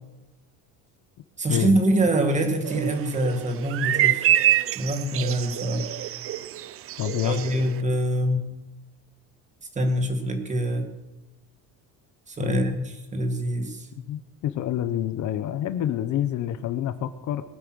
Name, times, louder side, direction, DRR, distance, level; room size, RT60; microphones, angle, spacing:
voice 1, 1.4-4.3 4.8-5.9 7.2-8.5 9.8-10.9 12.3-13.9, right 1 dB, 20° right, 5 dB, 2.2 m, -25 dB
sound 1, 2.6-7.8, right 12 dB, 40° right, 0.5 m, -26 dB
voice 2, 7.0-7.4 12.4-12.7 14.0-17.4, left 11 dB, 50° left, 12 dB, 1.0 m, -27 dB
21.5 x 9.0 x 6.3 m, 1.0 s
cardioid pair, 170°, 36 cm